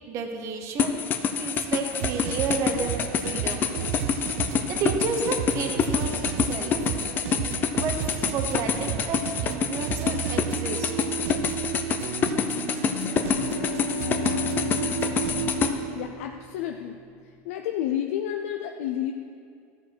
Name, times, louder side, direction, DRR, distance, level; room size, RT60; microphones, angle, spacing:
voice 1, 0.1-1.1 1.3-3.7 4.7-6.8 7.8-8.0 8.3-10.9, right 5 dB, 40° right, 5 dB, 0.9 m, -31 dB
sound 1, 0.8-15.7, left 7 dB, 25° left, 0.5 m, -27 dB
sound 2, 2.0-15.7, right 11 dB, 85° right, 0.6 m, -33 dB
sound 3, 12.8-16.8, left 1 dB, 60° left, 1.2 m, -32 dB
voice 2, 15.7-17.0 17.5-19.1, left 10 dB, 85° left, 4 dB, 0.5 m, -30 dB
13.0 x 4.7 x 6.1 m, 2.4 s
supercardioid pair, 155°, 7 cm